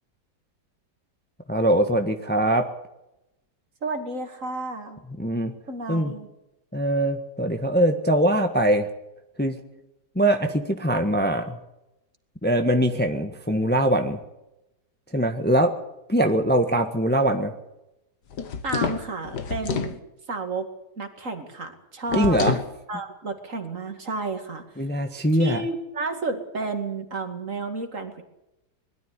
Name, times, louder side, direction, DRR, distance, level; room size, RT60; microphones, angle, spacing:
voice 1, 1.5-2.7 5.2-5.5 5.9-6.1 6.7-8.9 9.4-9.5 10.1-11.6 12.4-14.2 15.1-15.7 16.1-17.5 22.2-22.6 24.8-25.6, right 1 dB, 5° left, 6 dB, 1.3 m, -22 dB
voice 2, 3.8-5.0 5.7-6.3 18.6-20.0 20.3-20.7 21.0-22.4 22.9-24.6 25.3-28.2, right 3 dB, 50° right, 6 dB, 2.6 m, -31 dB
sound 1, 18.3-20.0 22.1-22.7, left 6 dB, 80° left, 2.0 m, -28 dB
21.0 x 13.0 x 9.9 m, 0.92 s
omnidirectional pair, 1.8 m